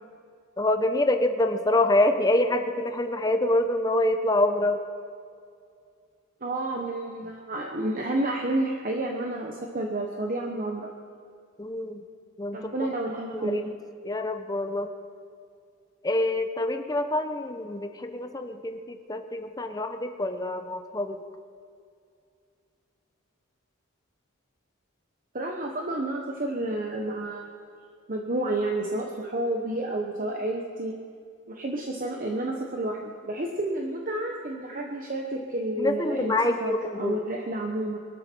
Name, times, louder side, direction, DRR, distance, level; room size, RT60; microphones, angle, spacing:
voice 1, 0.6-4.8 11.6-12.0 12.4-12.6 13.3-13.6 14.0-14.9 16.0-21.2 35.8-37.2, left 1 dB, 20° left, 7 dB, 0.8 m, -26 dB
voice 2, 6.4-10.9 12.5-13.7 25.3-27.5 28.1-30.9 31.5-38.0, right 1 dB, 40° right, 1 dB, 1.1 m, -30 dB
23.0 x 12.5 x 4.6 m, 2.3 s
head